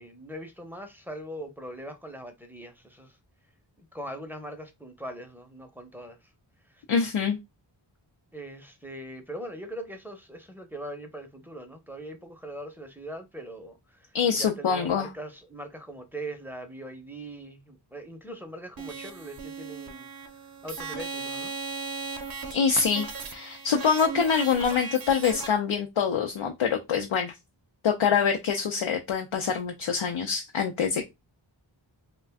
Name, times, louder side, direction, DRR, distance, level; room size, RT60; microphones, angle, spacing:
voice 1, 0.0-3.2 3.8-6.3 6.7-6.8 8.3-20.1 20.6-21.5, right 1 dB, 5° right, 0.6 m, -41 dB
voice 2, 6.9-7.4 14.1-15.1 22.5-27.3 27.8-31.0, left 6 dB, 80° left, 0.6 m, -25 dB
sound 1, 18.8-25.5, right 4 dB, 50° right, 0.6 m, -37 dB
2.4 x 2.2 x 3.4 m
wide cardioid pair, 45°, 47 cm